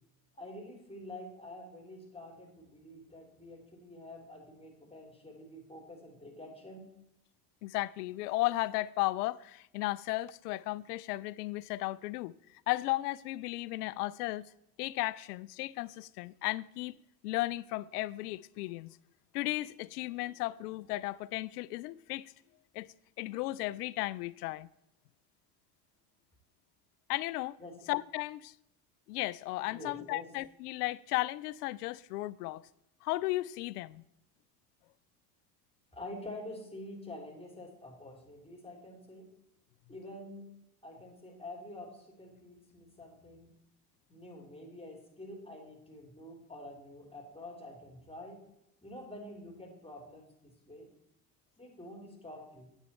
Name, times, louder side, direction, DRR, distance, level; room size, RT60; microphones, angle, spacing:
voice 1, 0.4-6.9 27.6-27.9 29.7-30.3 35.9-39.3 39.9-40.4 40.8-43.5 44.1-48.4 48.8-50.9 51.6-52.7, left 1 dB, 10° left, 3.2 m, -47 dB
voice 2, 7.6-12.3 12.7-14.5 14.8-16.9 17.2-19.0 19.3-22.3 22.7-22.9 23.2-24.7 27.1-27.6 27.9-28.5 29.1-32.6 33.0-34.0, left 18 dB, 80° left, 0.5 m, -35 dB
9.6 x 8.2 x 4.2 m
hypercardioid pair, 70°, 47 cm